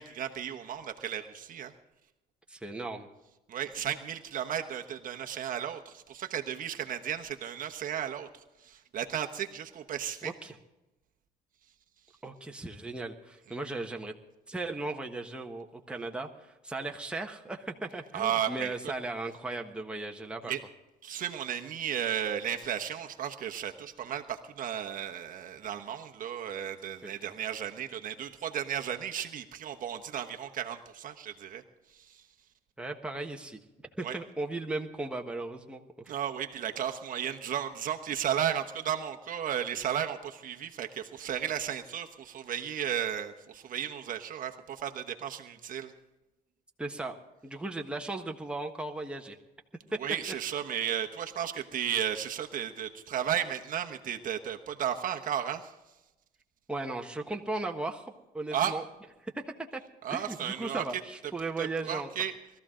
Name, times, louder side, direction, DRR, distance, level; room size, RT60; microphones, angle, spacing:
voice 1, 0.0-1.7 3.5-10.3 18.1-18.7 20.5-20.6 21.0-31.6 31.9-32.2 34.0-34.2 36.1-45.9 50.0-55.7 58.5-58.8 60.0-60.8 61.6-62.3, right 9 dB, 55° right, 5 dB, 1.1 m, -34 dB
voice 2, 2.5-3.1 10.2-10.6 12.2-14.1 14.5-20.5 27.0-27.1 32.8-33.6 34.0-36.1 46.8-47.2 47.4-49.4 49.9-50.0 56.7-58.1 58.3-58.8 59.2-59.8 60.1-62.1, right 2 dB, 5° right, 2 dB, 1.3 m, -37 dB
21.0 x 14.0 x 3.8 m, 1.0 s
cardioid pair, 110°, 17 cm